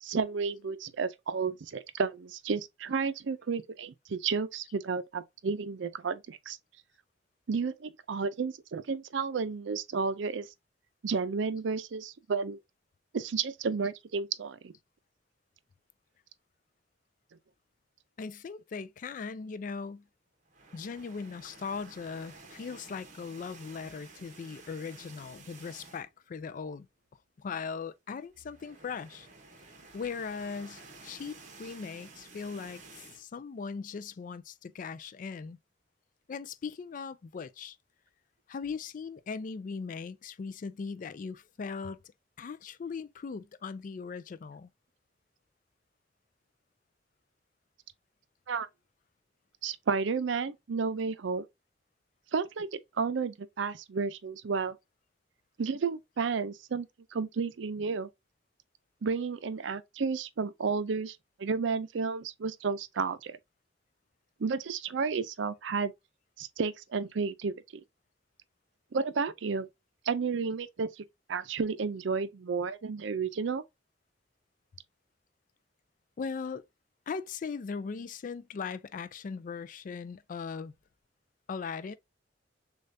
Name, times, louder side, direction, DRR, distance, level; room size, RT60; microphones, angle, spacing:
voice 1, 0.0-6.6 7.5-10.5 11.0-12.6 13.1-14.7 48.5-48.7 49.6-51.4 52.3-54.8 55.6-58.1 59.0-63.4 64.4-65.9 66.4-67.6 68.9-69.7 70.1-73.6, right 5 dB, 75° right, 0.5 m, -32 dB
voice 2, 18.2-20.1 20.7-26.9 27.4-29.3 29.9-35.6 36.3-37.8 38.5-42.0 42.4-44.7 76.2-76.7 77.1-80.7 81.5-82.0, left 5 dB, 45° left, 0.3 m, -39 dB
sound 1, 20.5-26.3 26.6-26.8 27.1-27.2 28.2-33.3, right 3 dB, 40° right, 1.0 m, -52 dB
6.5 x 2.3 x 2.6 m
head